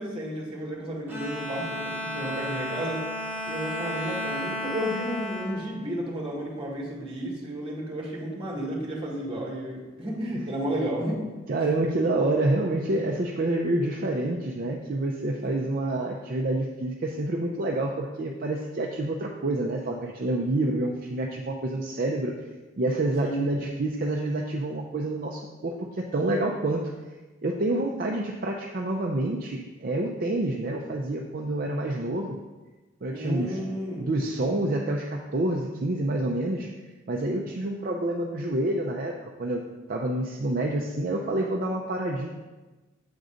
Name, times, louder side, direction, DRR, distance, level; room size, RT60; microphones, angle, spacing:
voice 1, 0.0-3.0 3.4-11.2 15.4-15.6 23.2-23.5 33.1-34.1, equal, 25° right, -3 dB, 1.6 m, -32 dB
Bowed string instrument, 1.1-6.6, left 1 dB, 10° right, 1.1 m, -34 dB
voice 2, 11.5-22.3 22.8-26.8 27.4-32.4 33.0-33.6 34.0-36.7 37.1-39.6 39.9-42.3, right 2 dB, 45° right, 0 dB, 0.5 m, -28 dB
7.9 x 3.9 x 5.0 m, 1.2 s
head